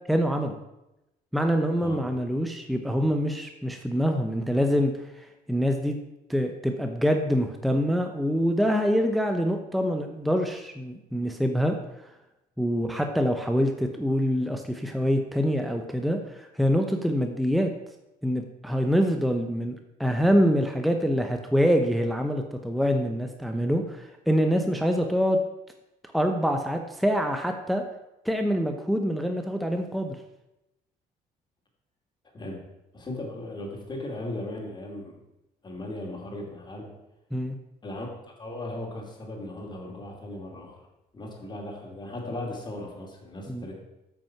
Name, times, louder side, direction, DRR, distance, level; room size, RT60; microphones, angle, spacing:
voice 1, 0.1-0.6 1.3-6.0 6.3-11.8 12.6-17.7 18.2-19.7 20.0-25.4 26.1-27.8 28.2-30.2 37.3-37.6 43.5-43.7, equal, ahead, 5 dB, 0.8 m, -25 dB
voice 2, 32.9-35.2 35.6-36.9 37.8-38.1 38.4-40.8 41.1-43.8, left 1 dB, 25° left, 0 dB, 2.7 m, -37 dB
8.8 x 6.2 x 5.8 m, 0.92 s
cardioid pair, 110°, 17 cm